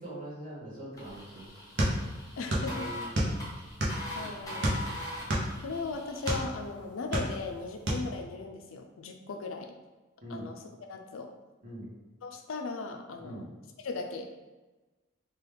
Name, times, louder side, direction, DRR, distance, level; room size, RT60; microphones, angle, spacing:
voice 1, 0.0-1.8 2.7-3.2 4.2-4.9 10.2-10.5 11.6-11.9 13.2-13.5, right 1 dB, 40° right, -8 dB, 1.2 m, -43 dB
sound 1, 0.9-6.3, left 1 dB, 20° left, 0.8 m, -42 dB
sound 2, 1.8-2.7 3.0-4.1 4.6-6.5 6.9-7.6 7.9-8.1, equal, 60° right, 0.8 m, -29 dB
voice 2, 2.4-2.9 4.1-4.6 5.6-9.7 10.3-10.6 10.9-11.3 12.2-13.5 13.8-14.3, left 4 dB, 90° left, 5 dB, 0.4 m, -37 dB
3.9 x 2.3 x 3.3 m, 1.2 s
head